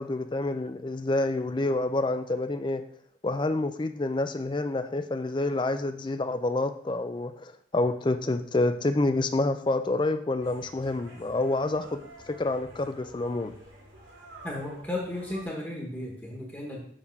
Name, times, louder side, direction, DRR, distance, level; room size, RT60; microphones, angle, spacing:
voice 1, 0.0-2.8 3.2-13.5, left 2 dB, 25° left, 9 dB, 0.4 m, -28 dB
sound 1, 10.4-15.5, right 1 dB, 90° right, 2.7 m, -49 dB
voice 2, 14.4-16.8, left 1 dB, 10° left, -2 dB, 1.3 m, -34 dB
7.1 x 3.5 x 5.3 m, 0.65 s
head